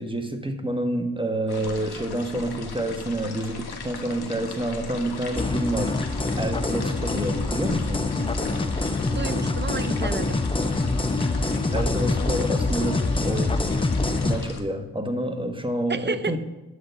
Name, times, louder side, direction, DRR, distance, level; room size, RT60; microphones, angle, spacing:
voice 1, 0.0-8.0 11.7-13.5 14.2-16.4, right 1 dB, 15° right, 5 dB, 1.2 m, -28 dB
sound 1, 1.5-14.6, left 4 dB, 75° left, 1.2 m, -38 dB
sound 2, 5.4-14.4, left 2 dB, 15° left, 0.6 m, -25 dB
voice 2, 8.2-8.8 9.1-10.4 15.9-16.4, right 4 dB, 30° right, 13 dB, 0.5 m, -32 dB
11.0 x 3.9 x 6.8 m, 1.1 s
cardioid pair, 55°, 38 cm